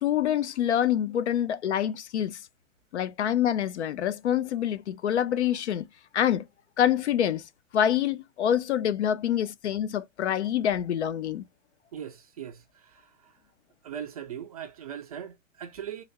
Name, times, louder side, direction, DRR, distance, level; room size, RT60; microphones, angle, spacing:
voice 1, 0.0-2.4 2.9-5.9 6.1-6.4 6.8-7.4 7.7-11.4, left 10 dB, 55° left, 0.5 m, -26 dB
voice 2, 11.9-13.0 13.8-16.0, right 9 dB, 30° right, 0.4 m, -39 dB
3.3 x 2.4 x 2.9 m
figure-of-eight pair, 120°, 41 cm